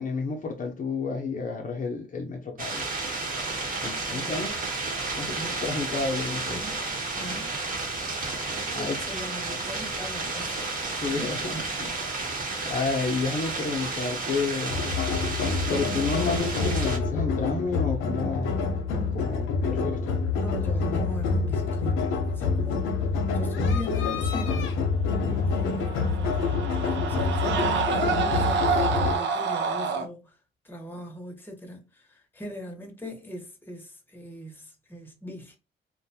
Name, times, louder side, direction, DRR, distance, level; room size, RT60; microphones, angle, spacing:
voice 1, 0.0-2.9 3.8-4.5 5.0-6.7 8.7-9.0 10.9-11.9 12.6-14.9 15.7-18.6 19.1-20.2 25.2-25.6, left 4 dB, 40° left, 0.6 m, -31 dB
sound 1, 2.6-17.0, right 3 dB, 45° right, 1.0 m, -32 dB
voice 2, 6.4-6.8 7.1-7.6 8.7-10.6 11.1-11.3 20.3-23.0 23.3-24.8 25.5-30.4 30.6-35.6, equal, 10° left, 0.8 m, -40 dB
sound 2, 14.7-29.2, left 4 dB, 90° left, 0.6 m, -27 dB
Screaming, 25.6-30.1, right 6 dB, 65° right, 0.5 m, -28 dB
2.5 x 2.2 x 2.7 m
cardioid pair, 90°, 20 cm